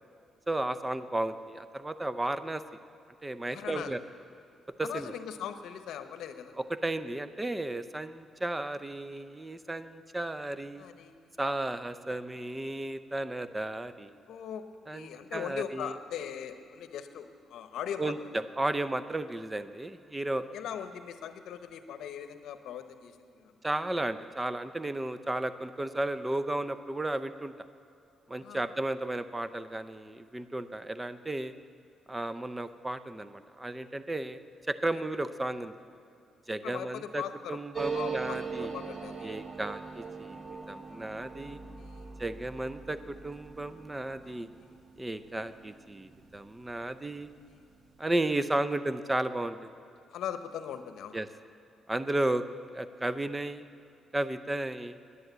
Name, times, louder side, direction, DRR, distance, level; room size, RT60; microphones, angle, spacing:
voice 1, 0.5-2.6 3.2-4.0 4.8-5.1 6.7-10.8 11.4-14.1 14.9-15.9 18.0-18.2 18.6-20.4 23.6-27.5 28.3-31.5 32.1-34.4 34.7-35.8 36.5-37.2 37.5-38.7 39.2-41.6 42.2-44.5 45.0-47.3 48.0-49.8 51.1-51.3 51.9-52.4 52.7-53.6 54.1-55.0, right 1 dB, 15° right, 12 dB, 0.6 m, -34 dB
voice 2, 3.5-3.9 4.8-6.5 10.8-11.3 14.3-14.6 14.9-18.3 20.5-23.5 28.4-28.7 36.6-37.6 37.9-39.4 40.9-41.0 41.8-42.1 44.2-44.8 47.4-47.6 50.1-51.2, left 9 dB, 80° left, 10 dB, 0.8 m, -40 dB
sound 1, 37.7-46.9 47.2-47.3 47.5-48.1, right 5 dB, 35° right, 1.0 m, -41 dB
10.5 x 9.7 x 7.9 m, 2.7 s
cardioid pair, 80°, 0 cm